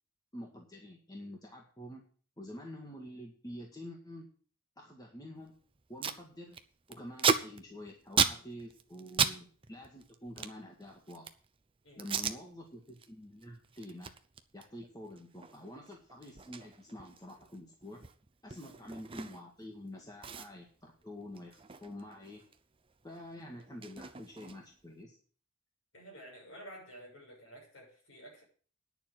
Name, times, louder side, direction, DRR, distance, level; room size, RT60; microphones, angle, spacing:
voice 1, 0.3-2.0 2.4-4.3 4.8-5.5 5.9-6.6 6.9-11.3 12.0-14.1 14.5-18.0 18.4-22.4 23.0-25.2, left 1 dB, 15° left, 0 dB, 1.9 m, -47 dB
Packing tape duct tape, 5.5-5.6 5.7-6.2 6.5-9.4 9.6-11.5 12.0-12.4 12.8-13.1 13.4-19.6 19.9-20.0 20.2-22.6 22.9-24.8, right 6 dB, 25° right, 0.6 m, -35 dB
voice 2, 11.8-12.2 18.7-18.8 25.9-28.4, right 1 dB, 60° left, -1 dB, 6.7 m, -51 dB
10.0 x 7.0 x 8.0 m, 0.43 s
head